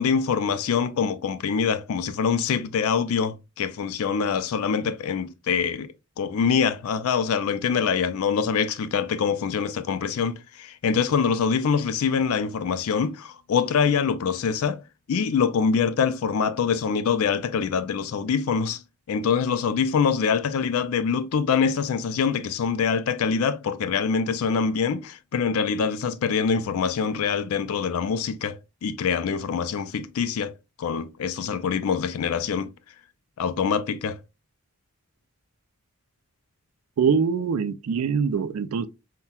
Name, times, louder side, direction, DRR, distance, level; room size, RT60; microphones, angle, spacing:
voice 1, 0.0-14.8 15.1-18.8 19.1-30.5 30.8-32.7 33.4-34.2, left 6 dB, 75° left, 0.4 m, -24 dB
voice 2, 37.0-38.9, right 6 dB, 75° right, 0.3 m, -23 dB
5.5 x 2.2 x 2.2 m
head